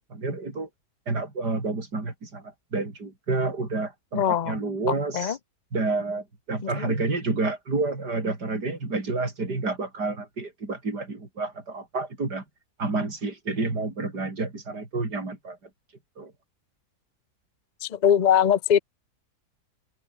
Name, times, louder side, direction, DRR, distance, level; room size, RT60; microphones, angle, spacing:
voice 1, 0.1-0.7 1.1-5.4 5.7-12.4 12.8-15.6 16.2-16.3, right 3 dB, 80° right, 5.3 m, -29 dB
voice 2, 4.1-4.6 5.1-5.4 6.6-6.9 17.8-18.8, left 9 dB, 40° left, 0.6 m, -22 dB
open air
omnidirectional pair, 1.7 m